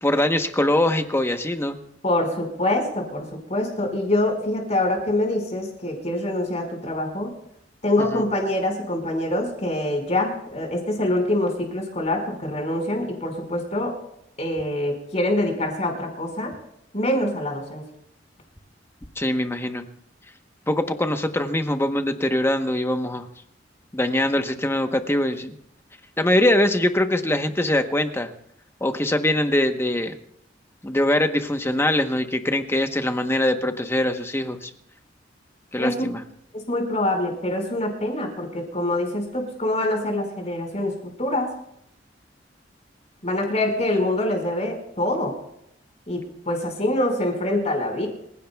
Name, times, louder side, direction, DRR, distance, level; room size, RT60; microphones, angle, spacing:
voice 1, 0.0-1.8 8.0-8.2 19.2-19.8 20.7-23.2 23.9-25.5 26.2-28.3 28.8-30.2 30.8-34.7 35.7-36.2, left 1 dB, 15° left, 7 dB, 1.0 m, -22 dB
voice 2, 2.0-7.3 7.8-13.9 14.4-16.5 16.9-17.8 35.8-35.9 36.5-40.9 41.2-41.5 43.2-45.3 46.1-48.1, left 1 dB, 40° left, 2 dB, 5.0 m, -25 dB
26.5 x 16.0 x 2.3 m, 0.76 s
head